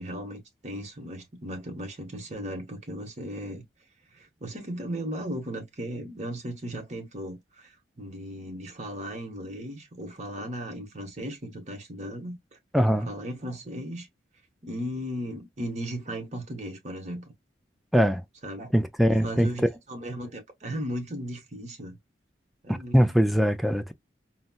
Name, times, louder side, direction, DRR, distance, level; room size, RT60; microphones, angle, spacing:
voice 1, 0.0-3.6 4.1-12.4 12.9-14.1 14.6-17.3 18.4-18.7 19.1-22.0 22.6-23.1, equal, 40° right, 1.0 m, -36 dB
voice 2, 12.7-13.1 17.9-18.2 18.7-19.5 22.7-23.9, equal, ahead, 0.3 m, -22 dB
4.0 x 2.0 x 2.2 m
head